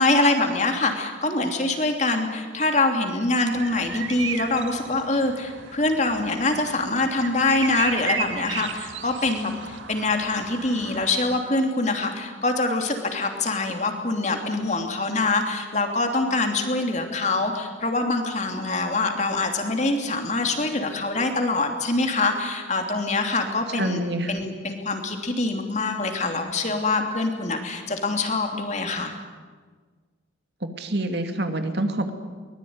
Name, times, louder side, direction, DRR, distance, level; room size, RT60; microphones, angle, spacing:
voice 1, 0.0-24.0 24.3-29.1, left 2 dB, 35° left, 4 dB, 2.9 m, -24 dB
sound 1, 3.5-11.4, right 6 dB, 80° right, 2.0 m, -35 dB
voice 2, 23.7-24.4 30.6-32.1, right 1 dB, 60° right, 6 dB, 2.3 m, -27 dB
23.0 x 21.0 x 9.6 m, 1.5 s
head